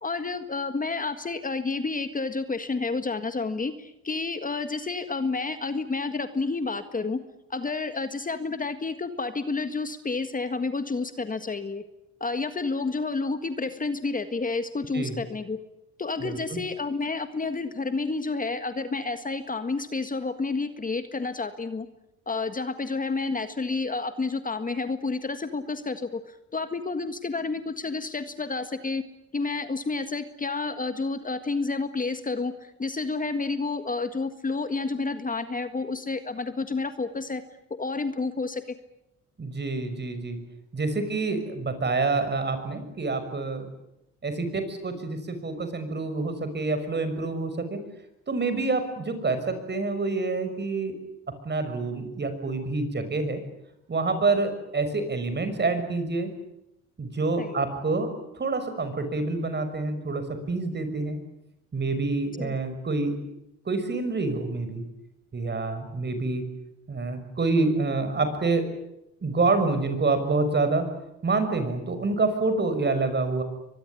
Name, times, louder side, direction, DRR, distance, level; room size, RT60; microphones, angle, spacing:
voice 1, 0.0-7.2 7.5-11.8 12.2-15.6 16.0-21.9 22.3-29.0 29.3-37.4 37.8-38.7 57.4-57.6 62.4-62.5, left 3 dB, 25° left, 9 dB, 1.7 m, -30 dB
voice 2, 16.2-16.6 39.4-40.4 40.7-43.7 44.2-47.8 48.3-50.9 51.4-53.4 53.9-56.3 57.0-61.2 61.7-63.1 63.7-64.8 65.3-66.4 66.9-68.7 69.2-70.9 71.2-73.4, right 3 dB, 35° right, 9 dB, 5.9 m, -27 dB
24.0 x 21.0 x 9.9 m, 0.85 s
cardioid pair, 90°, 30 cm